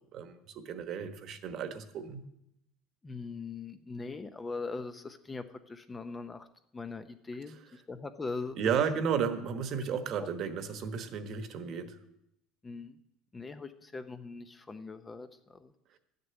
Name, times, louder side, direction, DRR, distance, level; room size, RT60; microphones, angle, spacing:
voice 1, 0.1-2.2 8.6-12.0, right 7 dB, 45° right, 9 dB, 1.2 m, -33 dB
voice 2, 3.0-6.5 6.7-8.6 12.6-13.0 13.3-15.7, left 4 dB, 15° left, 9 dB, 0.6 m, -41 dB
12.0 x 6.8 x 8.9 m, 0.81 s
cardioid pair, 145°, 0 cm